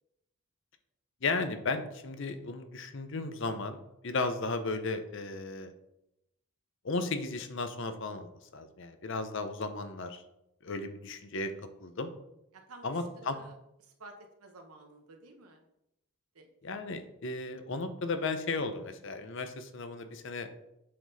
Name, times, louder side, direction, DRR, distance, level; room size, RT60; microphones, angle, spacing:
voice 1, 1.2-5.7 6.8-10.2 10.6-11.5 11.8-12.1 12.8-13.4 16.6-20.5, left 3 dB, 55° left, 9 dB, 0.6 m, -35 dB
voice 2, 12.5-13.5 13.8-15.6 16.3-16.5, right 2 dB, 80° right, 3 dB, 1.0 m, -52 dB
7.5 x 4.0 x 4.0 m, 0.85 s
head